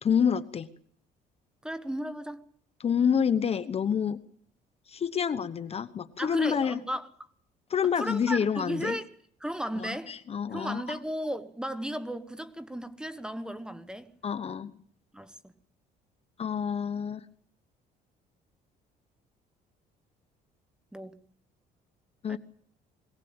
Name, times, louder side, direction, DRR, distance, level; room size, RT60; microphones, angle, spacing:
voice 1, 0.0-0.7 2.8-4.2 4.9-6.8 7.7-9.0 9.8-10.8 14.2-14.7 16.4-17.3 22.2-22.4, left 7 dB, 35° left, 1.0 m, -28 dB
voice 2, 1.6-2.4 6.2-7.1 8.0-9.1 9.4-10.1 10.5-14.1 15.1-15.5 20.9-21.2 22.3-22.4, equal, 5° right, 1.4 m, -35 dB
22.0 x 17.5 x 8.9 m
cardioid pair, 110°, 17 cm